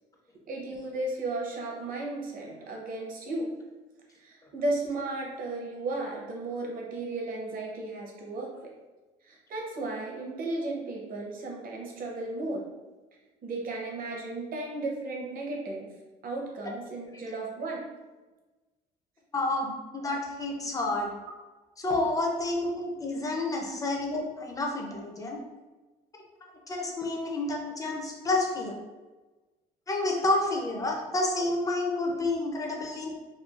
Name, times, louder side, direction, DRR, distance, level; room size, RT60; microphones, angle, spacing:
voice 1, 0.5-3.5 4.1-8.7 9.2-12.7 13.4-15.9 16.2-17.8 23.7-23.8, right 2 dB, 55° right, -1 dB, 0.7 m, -34 dB
voice 2, 19.3-21.2 21.8-25.4 26.7-28.8 29.9-33.1, left 2 dB, 20° left, 0 dB, 0.5 m, -29 dB
3.0 x 2.3 x 2.4 m, 1.2 s
cardioid pair, 110°, 17 cm